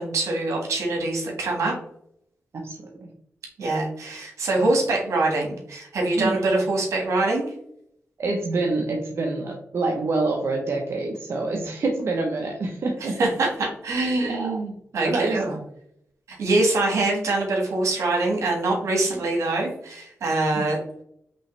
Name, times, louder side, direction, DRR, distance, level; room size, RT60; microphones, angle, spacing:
voice 1, 0.0-1.7 3.6-7.5 13.0-15.5 16.3-20.8, right 2 dB, 85° right, 0 dB, 1.6 m, -24 dB
voice 2, 2.5-3.1 6.2-6.4 8.2-13.1 14.2-14.6 15.0-15.6, right 3 dB, 60° right, 1 dB, 0.8 m, -26 dB
5.4 x 3.0 x 3.2 m, 0.71 s
wide cardioid pair, 105°, 5 cm